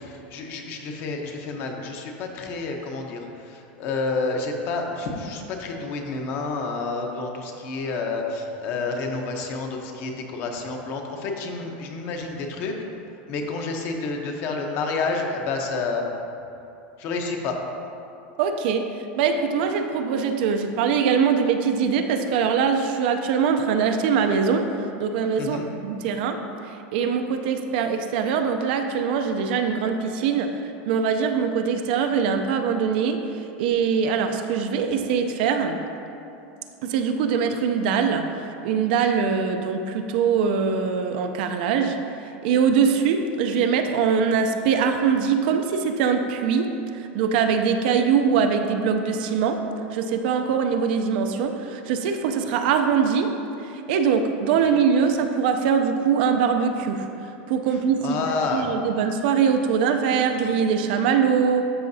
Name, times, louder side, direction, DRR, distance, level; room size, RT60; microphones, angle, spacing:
voice 1, 0.0-12.7 13.3-16.1 17.0-17.6 25.4-25.6 58.0-58.7, left 3 dB, 35° left, 2 dB, 0.8 m, -29 dB
voice 2, 18.4-24.7 25.0-26.4 26.9-30.6 30.9-33.3 33.6-35.8 36.8-42.0 42.4-49.6 49.9-53.4 53.7-57.1 57.5-58.2 58.5-61.7, right 6 dB, 50° right, 6 dB, 0.5 m, -22 dB
12.5 x 5.8 x 2.7 m, 2.8 s
supercardioid pair, 170°, 6 cm